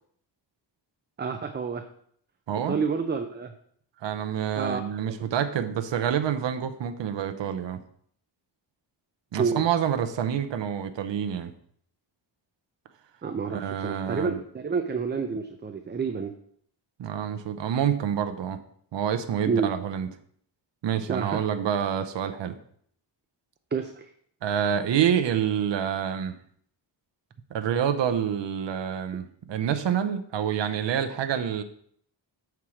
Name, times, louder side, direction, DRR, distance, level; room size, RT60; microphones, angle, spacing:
voice 1, 1.2-1.8 2.7-3.5 4.6-4.8 5.1-5.2 9.4-9.7 13.2-16.3 19.5-19.7 21.1-21.4 23.7-24.1, right 5 dB, 25° right, 6 dB, 0.4 m, -29 dB
voice 2, 2.5-2.8 4.0-7.8 9.3-11.5 13.5-14.3 17.0-18.6 18.9-20.1 20.8-22.6 24.4-26.4 27.5-31.6, right 9 dB, 70° right, 8 dB, 0.7 m, -27 dB
7.1 x 4.6 x 4.9 m, 0.63 s
wide cardioid pair, 110°, 46 cm